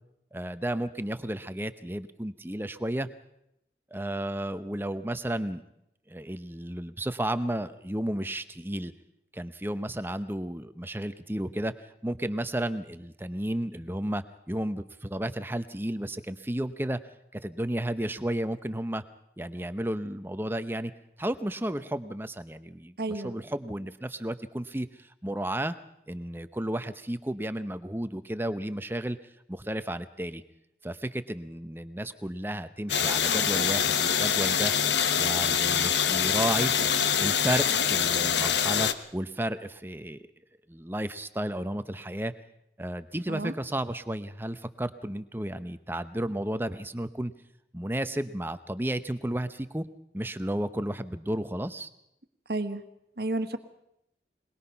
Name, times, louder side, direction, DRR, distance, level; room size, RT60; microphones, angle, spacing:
voice 1, 0.3-3.1 3.9-5.6 6.1-8.9 9.3-17.0 17.3-19.0 19.4-20.9 21.2-23.0 23.2-25.8 26.1-29.2 29.5-30.4 30.8-34.7 35.1-36.7 37.2-40.3 40.7-42.3 42.8-47.3 47.7-49.8 50.1-51.9, right 1 dB, 10° right, 11 dB, 0.8 m, -32 dB
voice 2, 23.0-23.3 43.3-43.5 52.5-52.8 53.2-53.6, right 2 dB, 60° right, 9 dB, 1.5 m, -31 dB
sound 1, 32.9-38.9, left 8 dB, 85° left, 1.1 m, -25 dB
22.0 x 21.5 x 5.8 m, 0.80 s
head